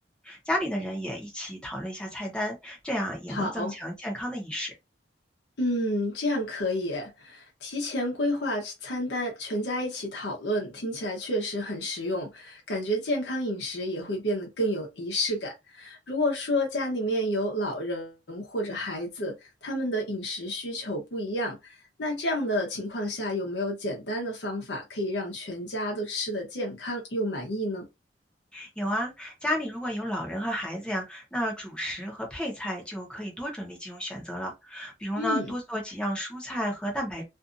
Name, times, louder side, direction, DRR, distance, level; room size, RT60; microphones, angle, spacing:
voice 1, 0.2-4.7 28.5-37.3, equal, 5° left, 0.9 m, -32 dB
voice 2, 3.3-3.7 5.6-27.9 35.2-35.5, left 1 dB, 70° left, 0.8 m, -30 dB
2.6 x 2.5 x 2.4 m
head